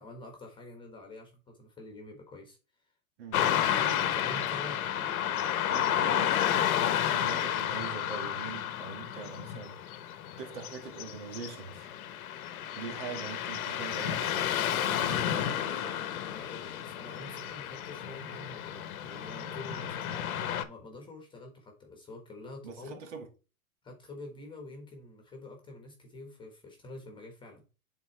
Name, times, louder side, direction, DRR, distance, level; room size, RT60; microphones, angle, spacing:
voice 1, 0.0-2.9 3.9-5.7 16.3-23.0 23.8-27.7, left 2 dB, 10° left, 1.3 m, -47 dB
voice 2, 3.2-3.5 5.7-9.8 10.4-11.9 12.8-14.5 14.8-16.0 22.6-23.3, right 5 dB, 50° right, 2.2 m, -43 dB
Car passing by / Traffic noise roadway noise, 3.3-20.6, left 10 dB, 70° left, 1.1 m, -31 dB
9.4 x 4.1 x 3.3 m
hypercardioid pair, 145°, 44 cm